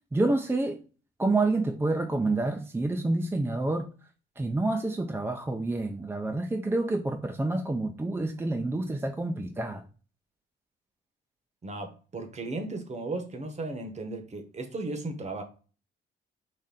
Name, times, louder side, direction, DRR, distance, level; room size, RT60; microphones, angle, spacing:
voice 1, 0.1-0.8 1.2-3.8 4.4-9.8, right 2 dB, 10° right, 0.4 m, -28 dB
voice 2, 11.6-15.4, right 2 dB, 35° right, 0.9 m, -35 dB
4.1 x 2.5 x 3.6 m
cardioid pair, 90°, 20 cm